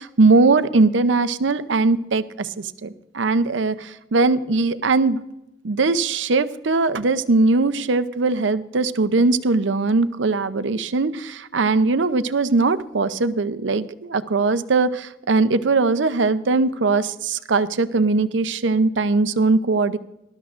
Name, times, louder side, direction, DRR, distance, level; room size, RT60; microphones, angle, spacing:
voice 1, 0.0-5.2 5.6-20.0, right 3 dB, 80° right, 13 dB, 0.7 m, -20 dB
20.0 x 12.5 x 2.5 m, 0.90 s
head